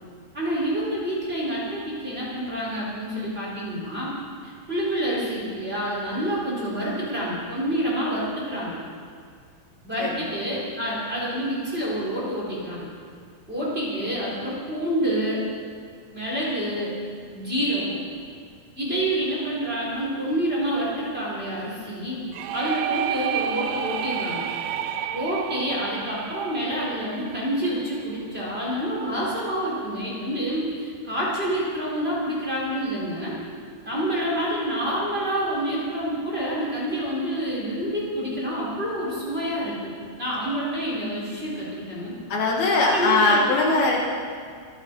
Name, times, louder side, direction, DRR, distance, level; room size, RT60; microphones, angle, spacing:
voice 1, 0.3-4.1 4.4-8.7 9.8-12.8 13.5-15.4 16.1-16.9 17.2-18.0 18.7-22.2 22.5-24.4 25.1-33.3 33.8-39.9 40.2-42.1 42.9-43.4, equal, 15° right, -6 dB, 4.1 m, -28 dB
voice 2, 10.0-10.3 42.3-44.0, left 3 dB, 70° left, -1 dB, 3.1 m, -21 dB
sound 1, 22.3-28.0, right 9 dB, 80° right, 2.4 m, -30 dB
25.0 x 9.9 x 5.3 m, 2.1 s
omnidirectional pair, 4.8 m